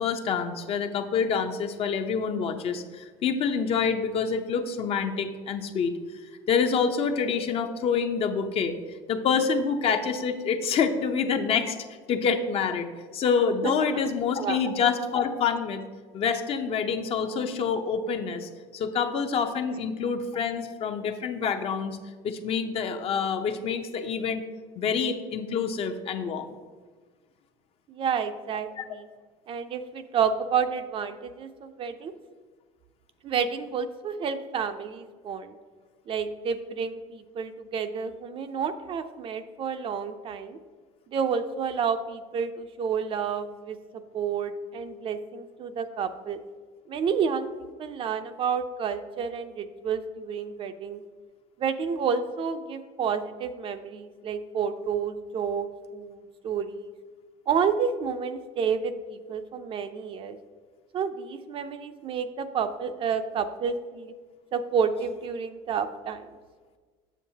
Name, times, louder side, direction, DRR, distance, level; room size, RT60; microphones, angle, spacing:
voice 1, 0.0-5.9 6.5-8.8 9.1-11.8 12.1-15.8 16.1-22.0 22.2-24.4 24.8-26.6 28.8-28.9, left 6 dB, 45° left, 7 dB, 0.6 m, -27 dB
voice 2, 13.6-14.1 14.4-14.6 27.9-29.1 29.5-32.1 33.2-35.5 36.1-40.6 41.1-46.4 46.9-51.0 51.6-56.9 57.5-60.4 60.9-64.1 64.5-66.3, right 6 dB, 40° right, 9 dB, 0.5 m, -30 dB
7.2 x 6.9 x 2.8 m, 1.5 s
supercardioid pair, 105°, 14 cm